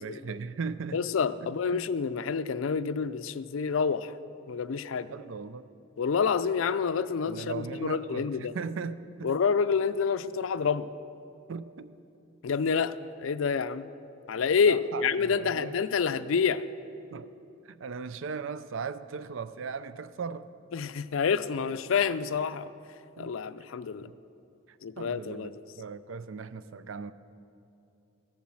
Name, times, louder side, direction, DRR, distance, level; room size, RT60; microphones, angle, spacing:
voice 1, 0.0-1.0 1.4-1.9 5.1-5.7 7.3-9.4 11.5-11.9 14.7-15.8 17.1-17.3 17.7-20.5 23.2-23.3 24.1-24.2 25.0-27.1, right 5 dB, 80° right, 14 dB, 0.5 m, -38 dB
voice 2, 0.9-4.1 4.5-5.1 6.0-8.5 9.2-10.9 12.4-13.9 14.3-16.6 20.7-22.7 23.2-24.1 24.8-25.6, left 6 dB, 85° left, 14 dB, 0.4 m, -28 dB
15.0 x 7.1 x 7.5 m, 2.7 s
head